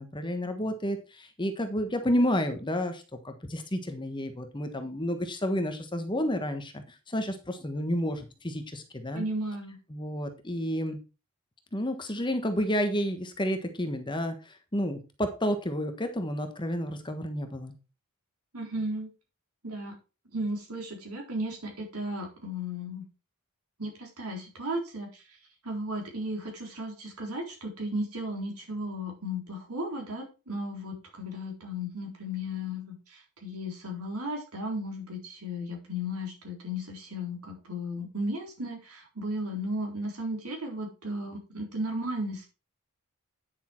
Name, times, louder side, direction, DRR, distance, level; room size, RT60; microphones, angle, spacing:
voice 1, 0.0-9.3 9.9-11.0 11.7-17.7, equal, 20° left, 7 dB, 1.3 m, -30 dB
voice 2, 9.1-9.8 18.5-19.1 19.6-19.9 20.3-23.0 23.8-25.2 25.6-42.5, equal, 80° right, 1 dB, 3.9 m, -35 dB
9.8 x 6.7 x 4.5 m, 0.31 s
head